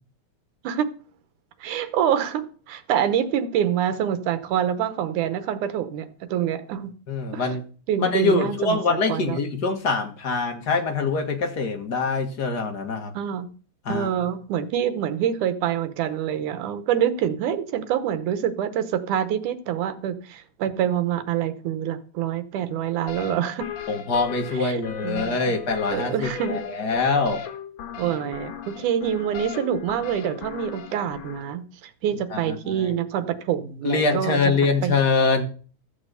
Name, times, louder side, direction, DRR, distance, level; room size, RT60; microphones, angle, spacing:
voice 1, 1.6-6.9 7.3-7.5 7.9-9.4 13.1-13.5 13.9-23.7 24.6-25.3 25.9-26.6 28.0-34.4 34.8-34.9, right 9 dB, 90° right, 2.6 m, -26 dB
voice 2, 7.1-7.6 8.0-13.1 13.8-14.1 23.9-27.4 32.3-32.9 33.8-35.4, left 4 dB, 40° left, 1.6 m, -24 dB
sound 1, 23.1-31.4, left 7 dB, 65° left, 2.7 m, -37 dB
13.5 x 6.8 x 6.8 m
omnidirectional pair, 3.4 m